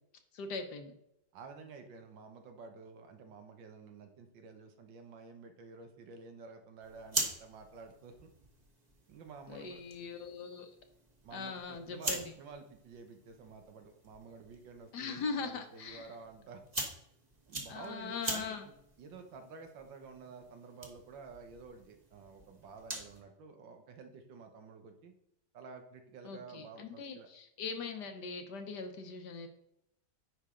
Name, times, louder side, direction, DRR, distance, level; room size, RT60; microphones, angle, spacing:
voice 1, 0.3-0.9 9.5-10.7 11.3-12.3 14.9-16.1 17.7-18.6 26.2-29.5, left 5 dB, 70° left, 6 dB, 1.5 m, -41 dB
voice 2, 1.3-8.3 9.1-9.8 11.2-16.6 16.9-17.0 17.5-18.5 19.0-25.1 25.5-27.3, right 4 dB, 90° right, 5 dB, 1.8 m, -51 dB
sound 1, 6.8-23.2, right 2 dB, 25° right, 1.2 m, -44 dB
9.8 x 5.0 x 3.7 m, 0.78 s
omnidirectional pair, 2.0 m